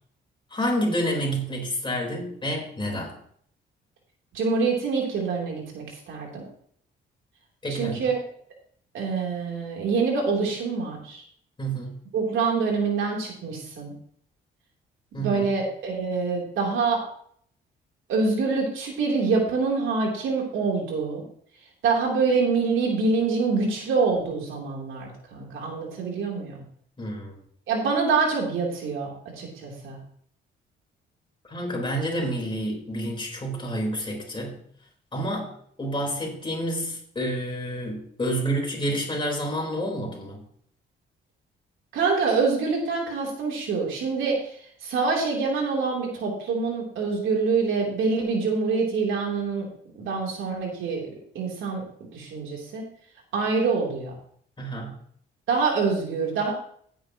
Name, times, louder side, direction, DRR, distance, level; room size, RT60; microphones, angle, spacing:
voice 1, 0.5-3.1 7.6-8.0 11.6-12.0 15.1-15.5 27.0-27.4 31.5-34.6 35.1-35.5 35.8-40.4 54.6-54.9, equal, 25° left, 0 dB, 4.4 m, -29 dB
voice 2, 4.3-6.4 7.7-8.2 8.9-11.2 12.1-13.9 15.2-17.0 18.1-21.2 21.8-26.6 27.7-29.1 29.4-30.0 41.9-44.6 44.8-49.7 50.0-51.1 51.4-51.8 52.1-52.8 53.3-54.1 55.5-56.5, right 4 dB, 80° right, -1 dB, 3.6 m, -25 dB
15.5 x 9.2 x 3.1 m, 0.63 s
cardioid pair, 90°, 20 cm